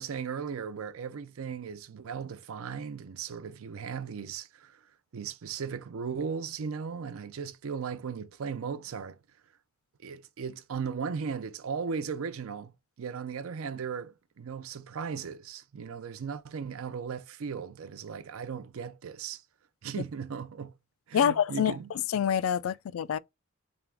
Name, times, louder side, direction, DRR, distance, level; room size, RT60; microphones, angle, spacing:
voice 1, 0.0-4.8 5.1-9.2 10.0-19.4 19.8-20.7 21.1-21.9, right 6 dB, 80° right, 0.5 m, -37 dB
voice 2, 21.1-21.8 22.1-23.2, left 8 dB, 80° left, 0.3 m, -26 dB
3.6 x 2.9 x 3.4 m
head